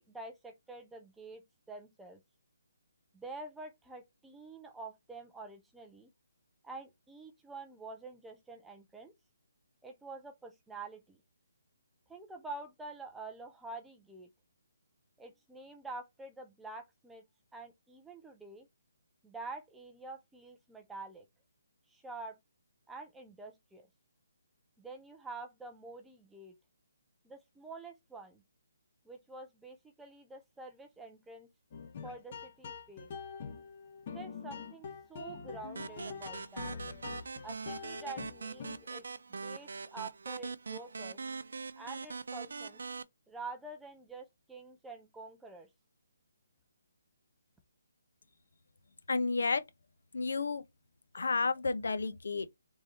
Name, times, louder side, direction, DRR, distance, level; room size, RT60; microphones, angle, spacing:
voice 1, 0.0-1.4 1.7-2.2 3.1-6.1 6.6-9.1 9.8-11.2 12.1-14.3 15.2-17.2 17.5-18.7 19.2-21.2 21.9-22.4 22.9-23.9 24.8-26.6 27.2-28.4 29.1-31.5 32.0-33.1 34.1-36.8 37.4-39.0 39.3-41.2 41.8-42.8 43.3-45.7, right 3 dB, 5° right, 0.4 m, -47 dB
sound 1, 31.7-39.0, left 5 dB, 30° left, 0.8 m, -45 dB
sound 2, 35.8-43.0, right 4 dB, 65° right, 0.6 m, -42 dB
voice 2, 49.1-49.6 50.1-50.6 51.1-52.5, left 4 dB, 70° left, 0.8 m, -31 dB
3.7 x 3.2 x 4.0 m
hypercardioid pair, 175°, 0 cm